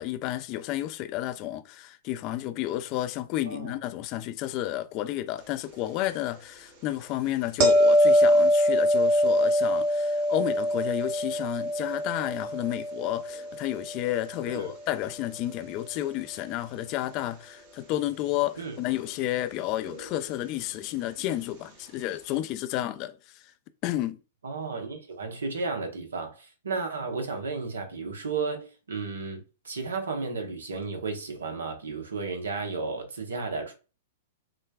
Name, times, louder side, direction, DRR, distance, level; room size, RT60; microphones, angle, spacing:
voice 1, 0.0-23.5 23.8-24.2, left 14 dB, 40° left, 0.4 m, -31 dB
sound 1, 7.6-14.6 19.9-20.0, equal, 50° right, 1.1 m, -24 dB
voice 2, 24.4-33.7, right 4 dB, 80° right, 0.9 m, -33 dB
5.9 x 2.2 x 2.3 m
hypercardioid pair, 110°, 0 cm